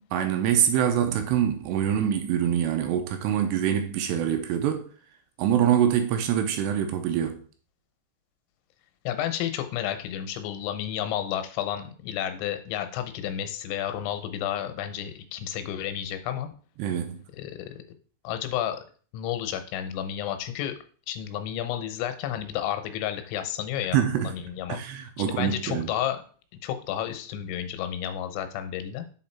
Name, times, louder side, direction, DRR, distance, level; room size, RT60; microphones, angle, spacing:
voice 1, 0.1-4.9 5.4-7.4 16.8-17.2 23.9-24.3 24.7-25.9, right 9 dB, 85° right, 2.7 m, -25 dB
voice 2, 9.1-16.5 17.3-17.8 18.2-18.8 19.1-20.8 21.1-24.0 24.2-24.8 25.2-26.2 26.6-29.1, left 10 dB, 85° left, 3.2 m, -31 dB
7.4 x 4.3 x 4.3 m
omnidirectional pair, 5.2 m